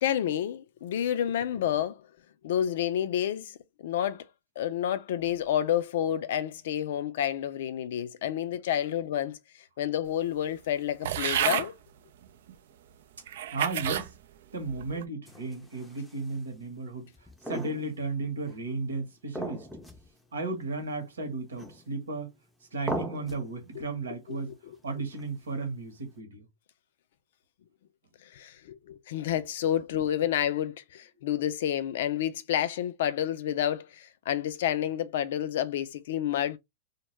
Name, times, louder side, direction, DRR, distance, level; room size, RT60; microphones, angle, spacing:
voice 1, 0.0-2.1 2.4-4.3 4.6-11.7 23.8-23.9 24.3-24.8 28.2-36.6, left 10 dB, 65° left, 0.4 m, -30 dB
sound 1, 11.0-11.7 12.5-12.6 13.3-14.1 14.6-15.0, right 10 dB, 70° right, 0.3 m, -30 dB
voice 2, 13.5-14.2 14.5-17.1 17.4-19.7 20.3-22.3 22.7-24.5 24.8-26.5, right 3 dB, 90° right, 1.0 m, -34 dB
sound 2, 15.3-16.4 17.1-18.2 18.4-18.6 19.3-20.1 20.4-20.5 21.5-22.1 22.9-23.5 25.1-25.6, equal, 5° left, 0.5 m, -38 dB
2.2 x 2.1 x 3.0 m
hypercardioid pair, 110°, 0 cm